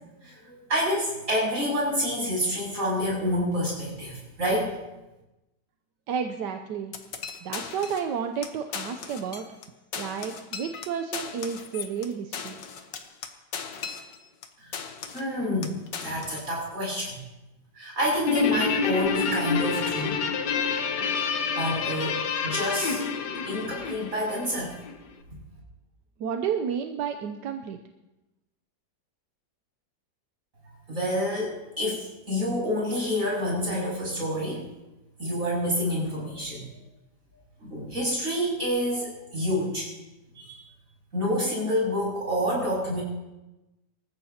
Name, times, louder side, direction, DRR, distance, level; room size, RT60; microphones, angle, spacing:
voice 1, 0.2-4.8 14.6-14.8 15.1-15.7 16.0-17.2 17.7-20.3 21.5-23.0 23.4-24.7 30.9-34.6 35.2-36.8 37.6-39.9 40.4-40.6 41.1-43.0, equal, 50° right, -4 dB, 7.5 m, -28 dB
voice 2, 6.1-6.9 7.4-9.4 9.9-12.6 26.2-27.8, right 7 dB, 85° right, 6 dB, 1.4 m, -31 dB
sound 1, 6.9-8.1 8.4-8.5 8.7-9.7 9.9-14.5 14.7-15.3 15.6-16.5, left 6 dB, 90° left, 1.8 m, -38 dB
Guitar, 18.3-25.0, left 5 dB, 70° left, 1.6 m, -28 dB
26.0 x 14.5 x 2.9 m, 1.0 s
omnidirectional pair, 1.8 m